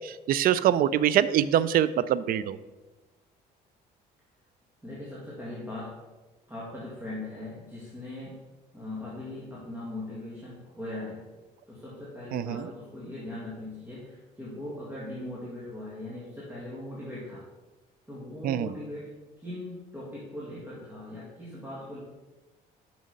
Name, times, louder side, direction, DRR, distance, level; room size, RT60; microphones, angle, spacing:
voice 1, 0.0-2.6 12.3-12.7 18.4-18.7, right 11 dB, 60° right, 17 dB, 0.4 m, -24 dB
voice 2, 4.8-6.0 6.5-8.4 8.7-11.3 11.7-17.5 18.1-22.0, left 1 dB, 10° right, -7 dB, 2.0 m, -40 dB
6.2 x 6.2 x 5.3 m, 1.2 s
cardioid pair, 110°, 17 cm